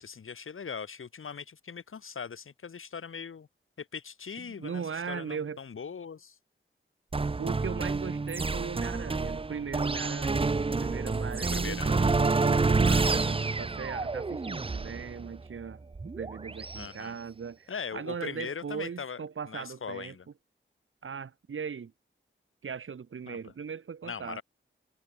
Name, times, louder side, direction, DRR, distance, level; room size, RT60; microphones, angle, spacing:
voice 1, 0.0-3.5 3.8-6.4 8.5-8.7 11.5-12.2 13.1-13.3 16.7-17.2 17.7-19.2 19.5-20.3 23.3-23.5 24.0-24.4, left 6 dB, 90° left, 4.6 m, -40 dB
voice 2, 4.4-5.6 7.4-10.5 10.8-15.8 16.2-20.1 21.0-21.9 22.6-24.4, right 6 dB, 85° right, 2.2 m, -38 dB
sound 1, 7.1-16.9, right 3 dB, 25° right, 0.7 m, -28 dB
wide cardioid pair, 130°, 21 cm